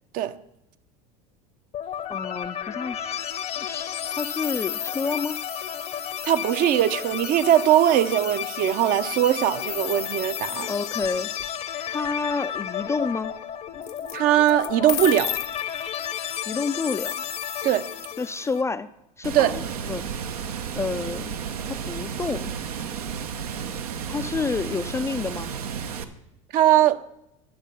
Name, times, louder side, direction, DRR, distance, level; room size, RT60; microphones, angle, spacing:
sound 1, 1.7-18.6, left 9 dB, 40° left, 0.7 m, -32 dB
voice 1, 2.1-5.4 10.7-11.3 11.9-13.3 16.5-17.3 18.2-18.9 19.2-20.0 20.8-21.3 21.7-22.5 24.1-25.5, left 4 dB, 15° left, 0.3 m, -29 dB
voice 2, 6.2-10.7 14.1-15.4 17.6-17.8 19.3-19.5 26.5-27.0, right 12 dB, 50° right, 0.6 m, -20 dB
sound 2, 10.9-11.5 13.8-14.2 14.5-16.5, left 15 dB, 70° left, 0.8 m, -34 dB
Water, 19.2-26.0, right 7 dB, 85° right, 0.8 m, -32 dB
10.5 x 6.5 x 5.4 m
hypercardioid pair, 85°, 19 cm